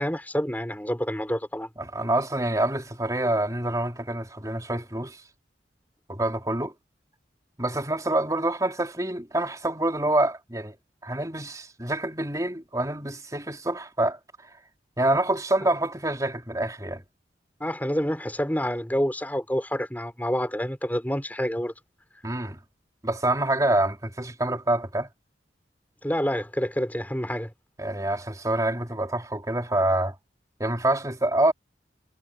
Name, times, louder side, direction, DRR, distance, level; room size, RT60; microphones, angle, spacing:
voice 1, 0.0-1.7 17.6-21.7 26.0-27.5, equal, 10° left, 6.2 m, -28 dB
voice 2, 1.8-5.2 6.1-6.7 7.6-10.8 11.0-14.2 15.0-17.0 22.2-22.6 23.0-25.1 27.8-30.1 30.6-31.5, right 1 dB, 20° right, 4.1 m, -26 dB
head